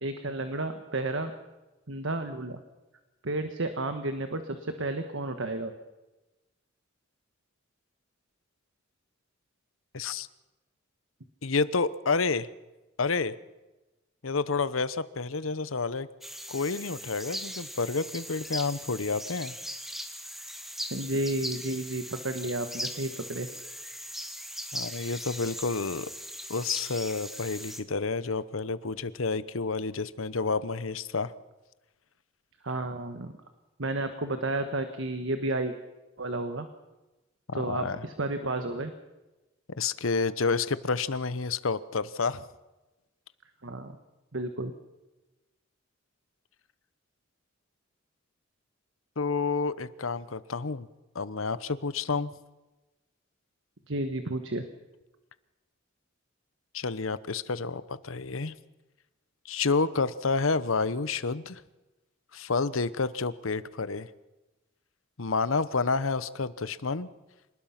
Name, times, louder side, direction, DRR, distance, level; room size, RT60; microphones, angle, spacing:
voice 1, 0.0-1.3 1.9-2.6 3.2-5.7 20.9-23.5 32.6-33.3 33.8-35.7 36.2-36.7 37.5-38.9 43.6-44.0 44.3-44.7 53.9-54.6, right 2 dB, 70° right, 8 dB, 1.5 m, -32 dB
voice 2, 9.9-10.3 11.4-12.5 13.0-13.4 14.2-16.1 16.5-19.5 24.7-26.1 26.5-31.3 37.5-38.0 39.8-42.4 49.2-50.9 51.1-52.3 56.7-58.5 59.5-61.6 62.3-64.1 65.2-67.1, left 4 dB, 85° left, 15 dB, 1.0 m, -29 dB
sound 1, 16.2-27.8, equal, ahead, 1.7 m, -39 dB
26.5 x 19.5 x 5.9 m, 1.1 s
head